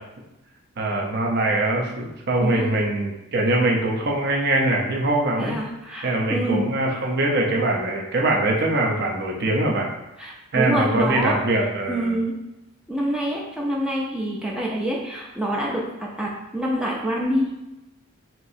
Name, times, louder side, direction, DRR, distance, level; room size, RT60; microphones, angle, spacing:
voice 1, 0.8-5.6 6.0-9.9 10.5-12.2, right 2 dB, 50° right, -1 dB, 0.7 m, -22 dB
voice 2, 5.4-6.6 10.2-11.3 11.9-12.3 12.9-17.5, equal, 5° right, -3 dB, 0.4 m, -26 dB
5.9 x 2.8 x 2.7 m, 0.96 s
head